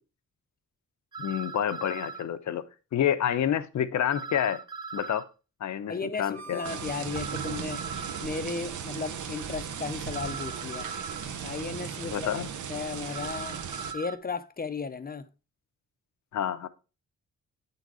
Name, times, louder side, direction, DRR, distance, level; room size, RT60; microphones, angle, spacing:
sound 1, 1.1-2.2 4.1-5.3 7.1-8.3 10.1-11.3 13.1-14.2, right 5 dB, 15° right, 0.5 m, -39 dB
voice 1, 1.2-2.6 2.9-4.6 4.9-5.3 5.6-6.6 12.0-12.5 16.3-16.7, left 9 dB, 70° left, 0.7 m, -28 dB
voice 2, 5.9-7.8 8.2-10.9 11.4-12.3 12.7-13.6 13.9-15.3, left 5 dB, 30° left, 0.5 m, -35 dB
Harmonica, 6.2-11.9, right 4 dB, 60° right, 1.2 m, -52 dB
sound 2, 6.6-13.9, right 7 dB, 80° right, 0.8 m, -37 dB
8.4 x 4.0 x 4.7 m
cardioid pair, 95°, 30 cm